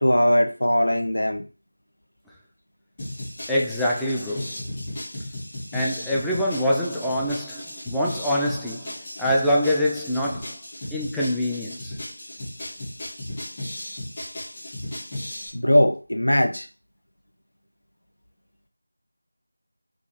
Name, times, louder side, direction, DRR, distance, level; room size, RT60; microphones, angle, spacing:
voice 1, 0.0-1.4 15.5-16.7, equal, 70° left, 0.7 m, -20 dB
sound 1, 3.0-15.5, left 1 dB, 20° left, 1.6 m, -36 dB
voice 2, 3.5-4.7 5.7-10.5 10.9-12.0, equal, ahead, 0.3 m, -25 dB
4.7 x 2.4 x 3.2 m
figure-of-eight pair, 170°, 0 cm